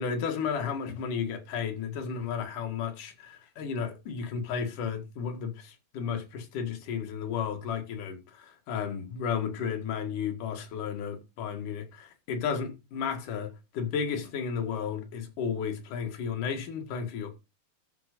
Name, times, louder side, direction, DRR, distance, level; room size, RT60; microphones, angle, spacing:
voice 1, 0.0-17.3, left 6 dB, 60° left, 3.2 m, -33 dB
13.5 x 6.1 x 5.2 m
omnidirectional pair, 4.4 m